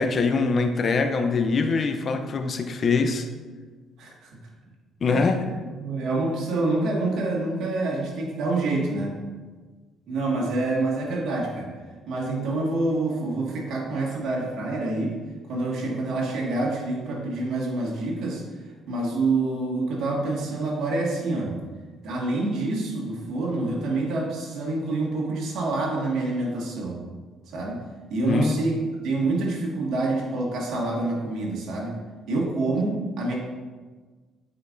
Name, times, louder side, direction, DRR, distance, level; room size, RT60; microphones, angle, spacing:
voice 1, 0.0-3.3 5.0-5.5 28.2-28.6, left 4 dB, 45° left, 6 dB, 0.6 m, -23 dB
voice 2, 4.0-4.4 5.1-5.4 5.8-9.2 10.1-11.7 12.1-15.2 15.5-18.4 18.9-21.6 22.0-27.0 27.5-27.8 28.1-28.8 29.0-32.0 32.3-33.3, right 2 dB, 70° right, -3 dB, 1.8 m, -27 dB
8.3 x 5.1 x 2.6 m, 1.4 s
supercardioid pair, 80°, 0 cm